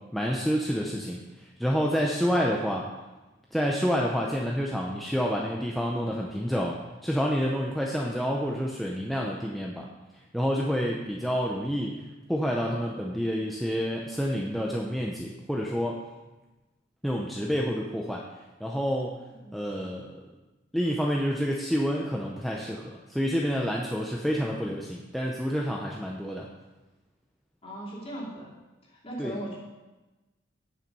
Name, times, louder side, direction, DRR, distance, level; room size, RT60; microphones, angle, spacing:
voice 1, 0.1-1.2 1.6-2.8 3.5-9.9 10.3-11.9 12.3-16.0 17.0-18.2 18.6-19.2 19.5-20.2 20.7-26.5 29.2-29.4, equal, ahead, -2 dB, 0.7 m, -28 dB
voice 2, 27.6-28.5 28.9-29.6, right 1 dB, 30° left, -5 dB, 2.8 m, -38 dB
9.0 x 7.4 x 5.4 m, 1.1 s
head